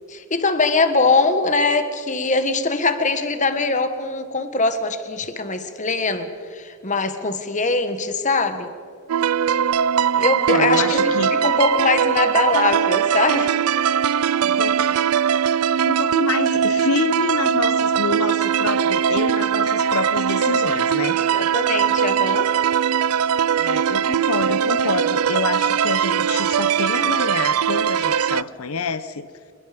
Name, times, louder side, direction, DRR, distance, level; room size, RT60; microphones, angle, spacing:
voice 1, 0.1-8.7 10.2-13.5 21.3-22.5, left 3 dB, 35° left, 9 dB, 1.5 m, -22 dB
sound 1, 9.1-28.4, right 8 dB, 90° right, 0.4 m, -20 dB
voice 2, 10.1-11.3 14.4-15.0 15.8-21.2 23.6-29.3, left 4 dB, 85° left, 12 dB, 0.9 m, -27 dB
27.0 x 21.0 x 5.2 m, 2.2 s
head